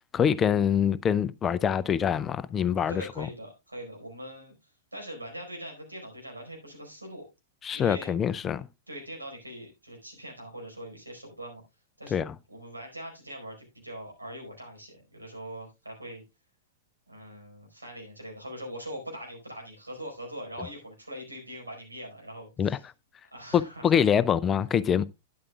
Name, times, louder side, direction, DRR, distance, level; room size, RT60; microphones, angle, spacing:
voice 1, 0.1-3.3 7.6-8.6 12.1-12.3 22.6-22.8 23.5-25.0, left 8 dB, 20° left, 0.4 m, -25 dB
voice 2, 2.9-7.2 7.7-8.1 8.9-11.6 12.0-12.2 12.5-16.2 17.1-22.8 23.3-24.0, equal, 85° right, 4.5 m, -42 dB
12.0 x 10.5 x 2.3 m
figure-of-eight pair, 100°, 0 cm